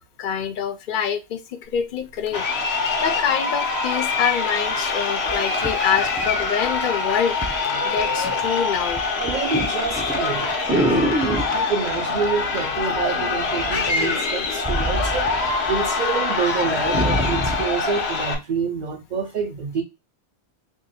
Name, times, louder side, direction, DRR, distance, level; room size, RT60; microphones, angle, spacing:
voice 1, 0.0-2.4 2.7-9.1, left 7 dB, 60° left, 0.6 m, -26 dB
Crowd, 2.3-18.3, left 4 dB, 80° left, 1.0 m, -24 dB
sound 1, 4.6-4.7 5.3-6.8 7.4-7.6 8.0-8.5 8.8-11.6 12.7-13.3 13.6-15.9 16.2-16.3 16.6-17.7 18.4-18.5, right 1 dB, 10° right, 0.4 m, -26 dB
voice 2, 9.2-15.2 15.7-19.8, right 5 dB, 55° right, 0.6 m, -27 dB
3.0 x 2.7 x 4.1 m
omnidirectional pair, 1.1 m